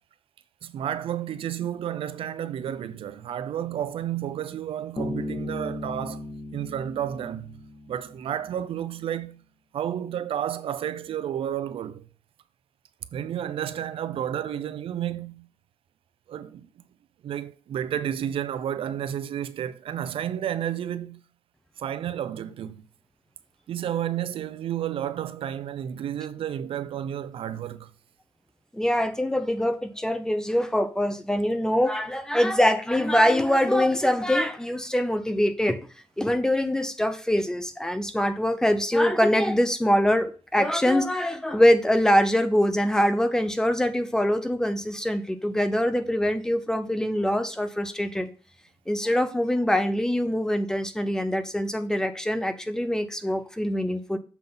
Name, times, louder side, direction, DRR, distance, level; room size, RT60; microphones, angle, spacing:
voice 1, 0.6-6.3 6.5-7.6 7.9-9.4 9.7-12.0 13.1-15.5 16.3-16.7 17.2-21.2 21.8-22.8 23.7-27.9, right 10 dB, 85° right, 0.6 m, -31 dB
Bass guitar, 5.0-8.4, left 1 dB, 30° left, 1.8 m, -36 dB
voice 2, 28.7-35.8 36.2-48.3 48.9-54.2, equal, 5° left, 0.6 m, -23 dB
7.1 x 5.7 x 3.9 m
wide cardioid pair, 155°, 9 cm